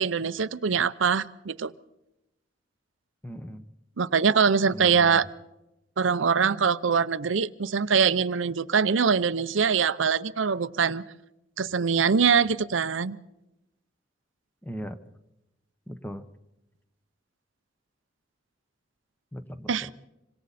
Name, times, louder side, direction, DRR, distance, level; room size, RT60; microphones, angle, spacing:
voice 1, 0.0-1.7 4.0-5.3 6.0-11.0 11.6-13.2 19.7-19.9, right 6 dB, 90° right, 14 dB, 0.7 m, -23 dB
voice 2, 3.2-3.7 4.7-5.2 14.6-15.0 15.9-16.3 19.3-19.9, equal, 10° left, 10 dB, 1.1 m, -38 dB
26.5 x 25.5 x 4.2 m, 0.91 s
head